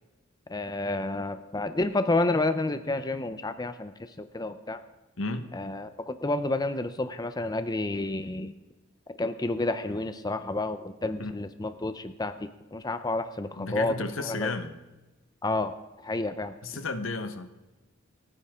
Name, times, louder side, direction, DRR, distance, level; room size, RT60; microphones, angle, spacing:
voice 1, 0.5-4.8 5.5-8.5 9.2-14.5 15.4-15.7 16.0-16.5, left 2 dB, 20° left, 10 dB, 0.6 m, -30 dB
voice 2, 5.2-5.5 11.2-11.3 13.6-14.7 16.6-17.5, left 3 dB, 70° left, 10 dB, 1.2 m, -33 dB
29.5 x 10.0 x 3.7 m, 1.1 s
head